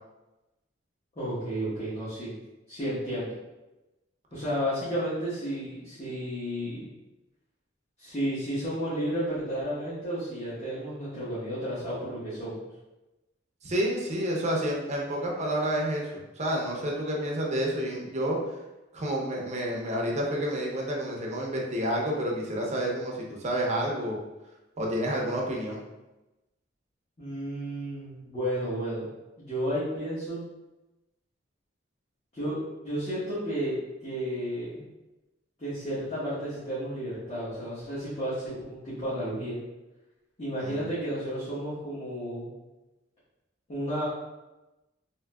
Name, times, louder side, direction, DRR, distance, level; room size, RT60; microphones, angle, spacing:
voice 1, 1.1-2.3 2.7-3.3 4.3-6.8 8.0-12.6 27.2-29.1 29.4-30.4 32.3-32.6 32.8-33.7 34.0-34.8 35.6-39.6 40.4-42.5 43.7-44.0, equal, 35° left, -13 dB, 1.1 m, -32 dB
voice 2, 13.6-18.4 18.9-24.2 24.8-25.8 40.6-40.8, right 1 dB, 35° right, -2 dB, 0.6 m, -29 dB
3.6 x 2.6 x 2.3 m, 1.0 s
head